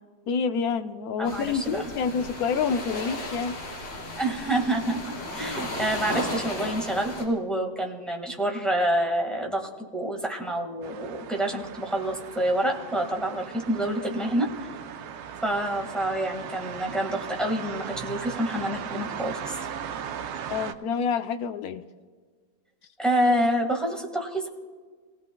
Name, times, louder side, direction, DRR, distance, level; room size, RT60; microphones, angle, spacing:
voice 1, 0.3-3.6 20.5-21.8, left 6 dB, 70° left, 8 dB, 0.8 m, -28 dB
sound 1, 1.2-7.2, left 1 dB, 50° left, 4.0 m, -34 dB
voice 2, 1.2-1.8 4.2-14.7 15.4-19.6 23.0-24.5, right 1 dB, ahead, 1 dB, 1.5 m, -27 dB
sound 2, 10.8-20.7, right 8 dB, 85° right, 1.6 m, -38 dB
28.5 x 17.5 x 2.3 m, 1.5 s
omnidirectional pair, 2.3 m